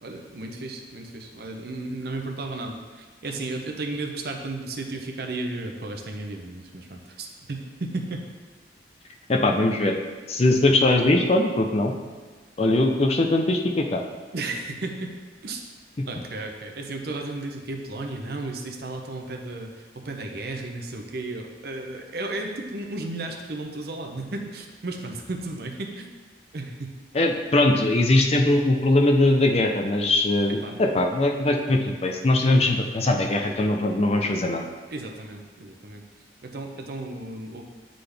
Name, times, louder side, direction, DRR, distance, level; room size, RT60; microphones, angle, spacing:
voice 1, 0.0-8.2 14.3-15.1 15.4-15.6 16.1-26.1 26.5-27.0 30.6-30.9 34.9-36.0 36.4-37.6, right 2 dB, 55° right, 3 dB, 0.7 m, -34 dB
voice 2, 9.3-9.9 10.3-11.9 12.6-14.0 16.0-16.1 27.1-34.6, left 2 dB, 35° left, 3 dB, 0.5 m, -21 dB
9.5 x 3.9 x 3.4 m, 1.4 s
head